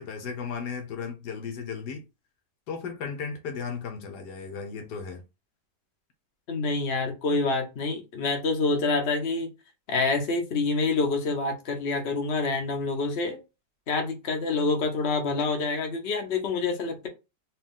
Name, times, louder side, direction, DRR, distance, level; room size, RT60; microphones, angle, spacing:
voice 1, 0.0-2.0 2.7-5.2, left 6 dB, 75° left, 1.3 m, -35 dB
voice 2, 6.5-9.5 9.9-13.4 13.9-17.1, left 3 dB, 45° left, 1.1 m, -27 dB
4.3 x 2.4 x 3.6 m
omnidirectional pair, 1.8 m